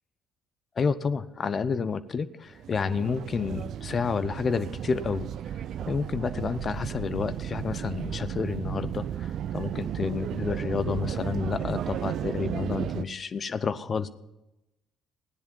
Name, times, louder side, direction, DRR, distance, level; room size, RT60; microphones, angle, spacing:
voice 1, 0.8-5.3 5.9-14.1, left 5 dB, 45° left, 14 dB, 0.8 m, -30 dB
sound 1, 2.5-13.0, right 10 dB, 65° right, 0.5 m, -34 dB
16.0 x 10.5 x 5.6 m, 0.97 s
hypercardioid pair, 55°, 0 cm